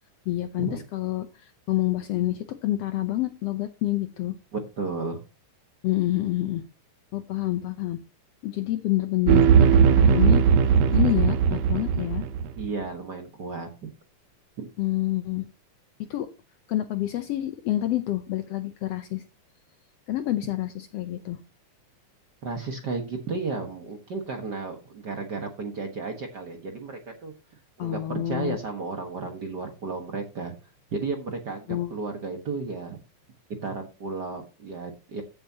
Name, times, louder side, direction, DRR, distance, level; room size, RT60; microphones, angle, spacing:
voice 1, 0.3-1.3 1.7-4.3 5.8-6.6 7.1-8.0 8.4-10.4 10.9-12.2 14.8-15.4 16.1-16.3 16.7-19.2 20.1-21.4 27.8-28.6 31.7-31.9, left 15 dB, 70° left, 9 dB, 1.6 m, -27 dB
voice 2, 4.5-5.2 10.3-10.4 12.6-13.9 14.6-14.7 22.4-27.3 27.8-30.5 30.9-33.0 33.6-35.2, right 4 dB, 45° right, 4 dB, 1.5 m, -33 dB
sound 1, 9.3-12.7, right 7 dB, 70° right, 1.7 m, -18 dB
14.5 x 7.7 x 2.8 m, 0.29 s
omnidirectional pair, 3.5 m